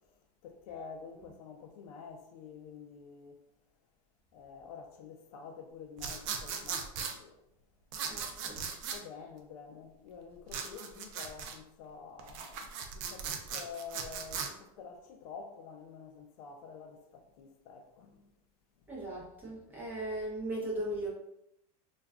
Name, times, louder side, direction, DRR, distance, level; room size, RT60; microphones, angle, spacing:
voice 1, 0.4-3.4 4.3-7.4 8.5-8.6 8.8-18.2, left 5 dB, 70° left, 0.5 m, -48 dB
sound 1, 6.0-7.1 7.9-9.0 10.5-11.6 12.2-14.5, right 6 dB, 60° right, 0.4 m, -38 dB
voice 2, 8.1-8.6 18.9-21.1, right 1 dB, 10° right, 0.7 m, -38 dB
2.3 x 2.3 x 3.4 m
supercardioid pair, 155°, 19 cm